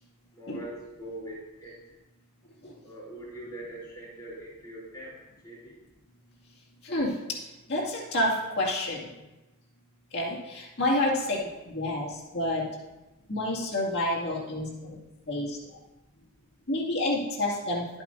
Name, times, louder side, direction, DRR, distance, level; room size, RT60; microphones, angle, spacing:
voice 1, 0.3-2.0 2.8-5.8, right 1 dB, 20° left, -8 dB, 3.5 m, -42 dB
voice 2, 6.8-7.4 7.7-9.2 10.1-11.4 11.7-12.7 13.3-15.0 15.3-15.8 16.7-17.9, left 1 dB, 50° left, -5 dB, 2.2 m, -29 dB
12.5 x 8.6 x 2.6 m, 1.0 s
head